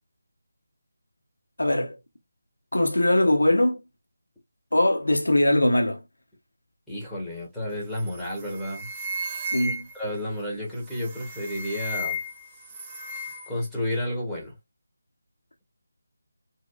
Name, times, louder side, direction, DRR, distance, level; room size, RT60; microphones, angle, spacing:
voice 1, 1.6-2.0 2.7-3.8 4.7-6.0 9.5-9.8, left 1 dB, 80° left, 0.9 m, -21 dB
voice 2, 6.9-8.9 9.9-12.2 13.5-14.5, left 1 dB, ahead, 1.5 m, -31 dB
sound 1, 8.0-8.2 8.5-10.1 11.0-12.4 12.7-13.5, equal, 20° right, 0.8 m, -34 dB
4.1 x 2.3 x 2.3 m
figure-of-eight pair, 160°, 0 cm